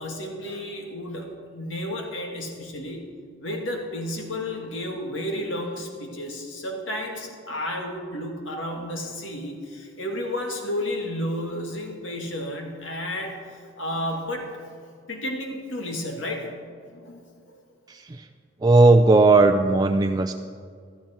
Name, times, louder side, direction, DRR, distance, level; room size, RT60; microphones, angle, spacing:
voice 1, 0.0-3.1 3.4-14.5 15.1-16.5 16.9-17.6, left 1 dB, 75° left, 1 dB, 2.2 m, -32 dB
voice 2, 17.9-18.3 18.6-20.3, right 3 dB, 20° right, 5 dB, 0.4 m, -17 dB
16.0 x 12.5 x 4.5 m, 2.1 s
head